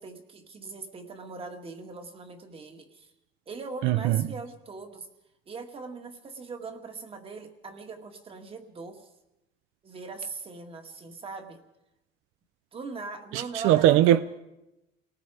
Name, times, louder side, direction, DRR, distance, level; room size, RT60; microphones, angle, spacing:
voice 1, 0.0-3.1 3.5-5.1 5.5-9.1 9.8-11.6 12.7-14.2, right 4 dB, 25° right, 2.0 m, -40 dB
voice 2, 3.8-4.2 13.3-14.2, right 13 dB, 85° right, 0.7 m, -21 dB
28.5 x 19.0 x 5.0 m
cardioid pair, 160°, 20 cm